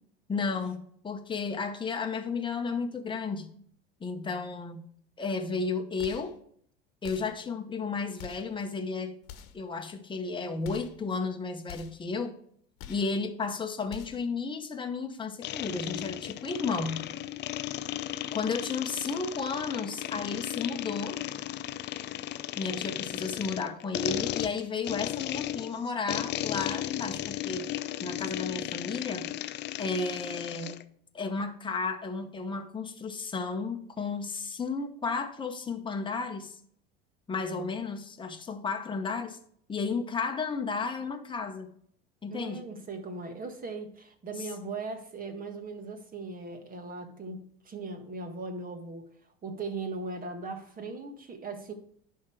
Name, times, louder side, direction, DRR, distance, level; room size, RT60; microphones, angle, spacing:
voice 1, 0.3-3.5 4.0-4.8 5.2-6.3 7.0-9.2 9.5-12.3 12.9-17.0 18.3-21.2 22.6-29.3 29.8-30.8 31.1-36.6 37.3-39.4 39.7-41.7 42.2-42.6, left 4 dB, 15° left, 4 dB, 1.1 m, -33 dB
sound 1, 6.0-6.4 7.0-7.4 8.2-8.5 9.2-9.7 10.6-11.0 11.7-12.1 12.8-13.2 13.9-14.3, left 8 dB, 65° left, 1.2 m, -46 dB
sound 2, 15.4-30.8, left 13 dB, 35° left, 0.5 m, -35 dB
voice 2, 42.3-49.0 49.4-51.7, right 3 dB, 30° right, 6 dB, 1.5 m, -39 dB
11.0 x 3.7 x 4.8 m, 0.63 s
hypercardioid pair, 85°, 30 cm